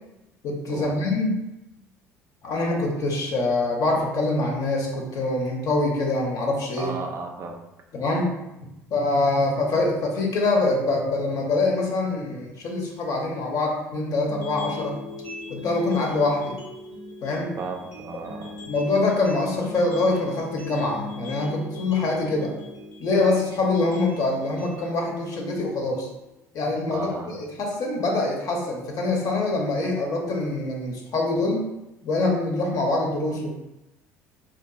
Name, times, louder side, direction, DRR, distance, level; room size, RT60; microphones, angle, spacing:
voice 1, 0.4-1.4 2.4-6.9 7.9-8.3 8.9-15.0 15.5-16.6 17.2-17.5 18.7-22.5 23.0-26.1 26.5-31.6 32.0-33.5, left 2 dB, 50° left, 0 dB, 0.6 m, -24 dB
voice 2, 6.8-7.6 17.6-18.6 26.9-27.4, right 4 dB, 35° right, 2 dB, 0.3 m, -34 dB
sound 1, 14.2-26.3, left 2 dB, 85° left, 0.8 m, -40 dB
2.7 x 2.3 x 2.3 m, 0.94 s
figure-of-eight pair, 60°, 8 cm